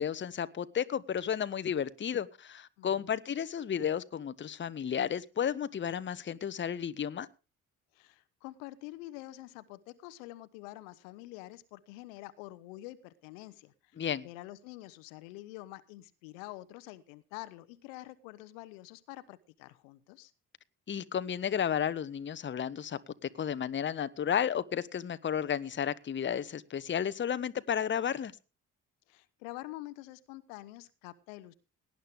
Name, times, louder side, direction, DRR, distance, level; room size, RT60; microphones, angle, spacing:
voice 1, 0.0-7.3 14.0-14.3 20.9-28.3, left 8 dB, 30° left, 0.8 m, -33 dB
voice 2, 2.8-3.2 7.9-20.3 29.1-31.5, left 17 dB, 70° left, 0.8 m, -47 dB
18.0 x 10.5 x 3.5 m
figure-of-eight pair, 45°, 41 cm